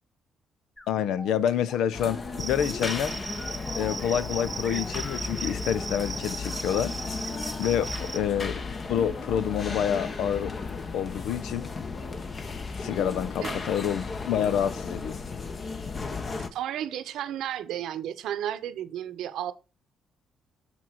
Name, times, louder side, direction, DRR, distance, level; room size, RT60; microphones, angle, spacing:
sound 1, 0.8-6.0, left 2 dB, 25° left, 3.5 m, -45 dB
voice 1, 0.9-3.2 3.7-6.9 7.6-8.6 8.9-10.5 10.9-11.7 12.8-15.2, left 9 dB, 80° left, 0.6 m, -28 dB
sound 2, 1.9-16.5, left 4 dB, 40° left, 1.1 m, -35 dB
Cricket, 2.4-8.2, right 3 dB, 25° right, 0.6 m, -37 dB
voice 2, 16.5-19.5, right 11 dB, 80° right, 0.8 m, -33 dB
7.2 x 6.0 x 4.5 m
cardioid pair, 90°, 0 cm